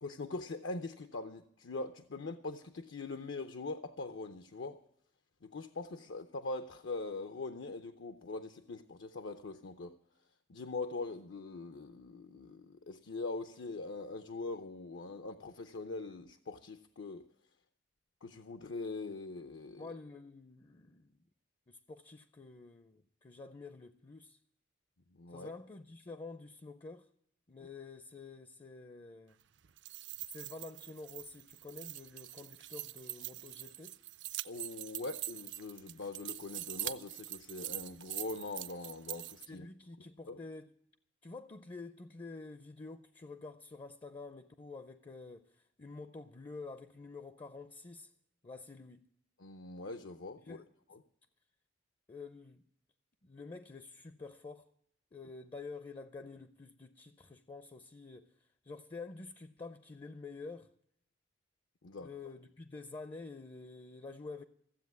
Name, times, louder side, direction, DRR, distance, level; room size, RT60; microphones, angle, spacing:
voice 1, 0.0-4.8 5.4-10.0 10.5-17.3 18.2-19.9 25.2-25.5 34.4-39.7 40.3-40.4 49.4-50.6 50.9-51.0 61.8-62.1, left 3 dB, 75° left, 0.7 m, -42 dB
voice 2, 19.8-21.2 21.7-24.4 25.3-27.1 27.5-29.4 30.3-34.0 39.5-40.7 41.2-48.1 48.4-49.1 50.4-50.7 52.1-52.6 53.2-54.7 55.1-58.3 58.6-60.7 62.0-64.4, left 3 dB, 25° left, 0.5 m, -48 dB
sound 1, 29.6-39.5, right 15 dB, 65° right, 0.5 m, -44 dB
15.0 x 7.9 x 9.4 m
head